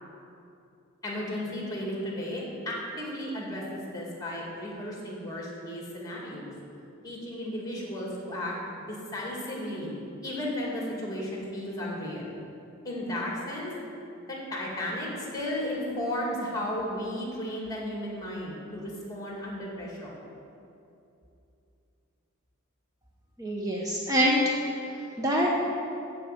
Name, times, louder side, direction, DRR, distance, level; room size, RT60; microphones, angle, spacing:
voice 1, 1.0-6.5 7.0-9.9 10.2-12.3 12.8-13.7 14.2-20.2, left 1 dB, 20° left, -3 dB, 2.3 m, -34 dB
voice 2, 23.4-24.4 24.9-25.6, equal, 15° right, -3 dB, 0.8 m, -26 dB
7.8 x 7.5 x 7.7 m, 2.7 s
head